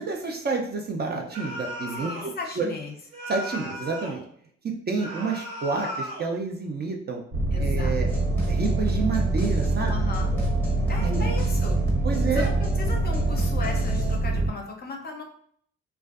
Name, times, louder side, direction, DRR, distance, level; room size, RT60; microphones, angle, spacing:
voice 1, 0.0-2.7 3.3-4.2 4.6-7.2 7.5-8.1 8.5-9.9 11.0-11.3 12.0-12.5, right 4 dB, 35° right, 1 dB, 0.4 m, -29 dB
sound 1, 1.3-2.4 3.1-4.2 5.0-6.3, equal, 60° right, 1.0 m, -36 dB
voice 2, 2.0-2.9 7.5-7.9 9.9-10.3 10.9-11.8 12.3-12.5 12.8-15.2, left 3 dB, 30° left, 1 dB, 0.5 m, -36 dB
sound 2, 7.3-14.5, right 2 dB, 75° right, 1.1 m, -24 dB
sound 3, 8.1-14.2, left 2 dB, 5° left, 0.8 m, -36 dB
2.4 x 2.2 x 2.3 m, 0.62 s
cardioid pair, 90°, 30 cm